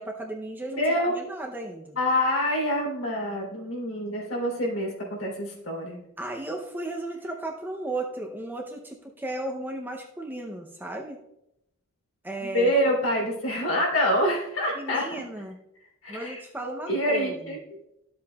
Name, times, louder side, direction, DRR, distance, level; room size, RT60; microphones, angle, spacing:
voice 1, 0.0-2.0 6.2-11.2 12.2-12.7 14.8-15.6 16.1-17.6, right 1 dB, 10° right, 1 dB, 0.6 m, -35 dB
voice 2, 0.7-1.1 2.0-6.0 12.4-15.1 16.0-16.4 16.9-17.8, equal, 65° left, -1 dB, 3.3 m, -26 dB
12.5 x 7.7 x 2.3 m, 0.82 s
head